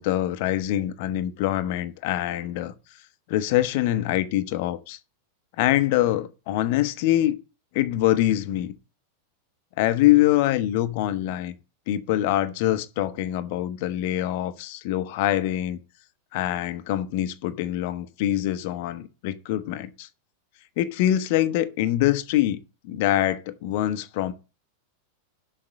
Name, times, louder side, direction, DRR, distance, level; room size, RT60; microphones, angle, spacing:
voice 1, 0.0-2.7 3.3-5.0 5.6-7.4 7.7-8.7 9.8-11.5 11.9-15.8 16.3-20.1 20.8-24.3, left 13 dB, 50° left, 0.8 m, -24 dB
6.7 x 5.8 x 6.4 m
figure-of-eight pair, 90°, 0 cm